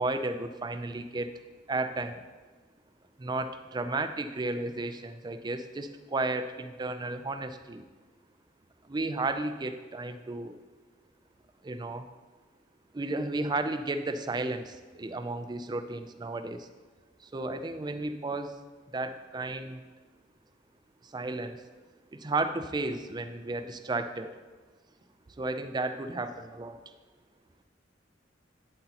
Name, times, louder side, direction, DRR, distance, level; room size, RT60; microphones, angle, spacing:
voice 1, 0.0-1.4 1.7-2.2 3.2-7.9 8.8-10.6 11.6-12.0 12.9-16.7 17.2-18.6 18.9-19.8 21.0-21.6 22.1-24.3 25.4-26.8, right 2 dB, 20° right, 9 dB, 0.4 m, -33 dB
8.9 x 7.6 x 2.9 m, 1.4 s
head